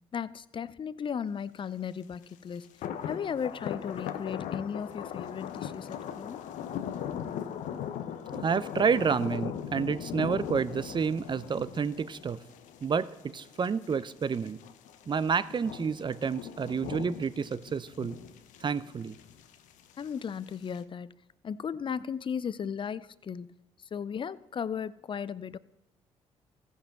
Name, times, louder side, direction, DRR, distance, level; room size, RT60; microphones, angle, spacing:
voice 1, 0.1-2.7 3.0-6.4 20.0-21.1 21.4-23.5 23.8-25.6, left 7 dB, 40° left, 0.5 m, -36 dB
sound 1, 2.2-2.3 2.6-20.8, left 9 dB, 75° left, 0.7 m, -39 dB
voice 2, 8.3-12.4 12.8-14.6 15.1-18.2 18.6-19.2, right 6 dB, 35° right, 0.5 m, -29 dB
14.5 x 5.5 x 5.9 m
hypercardioid pair, 55°, 13 cm